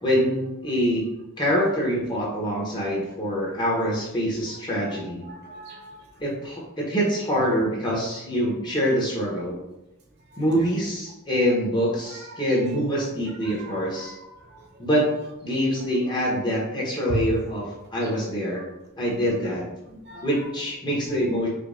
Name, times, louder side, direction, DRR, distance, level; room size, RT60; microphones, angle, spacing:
voice 1, 0.0-1.0 1.4-5.3 6.2-9.5 10.4-14.1 14.8-15.1 15.4-18.6 19.0-19.6 20.2-21.5, equal, 20° left, -5 dB, 0.8 m, -25 dB
voice 2, 5.3-6.0 10.5-10.7 12.1-12.3 13.5-14.3 17.1-17.2 19.9-20.4, right 2 dB, 50° right, 0 dB, 0.7 m, -36 dB
5.0 x 2.2 x 2.5 m, 0.95 s
head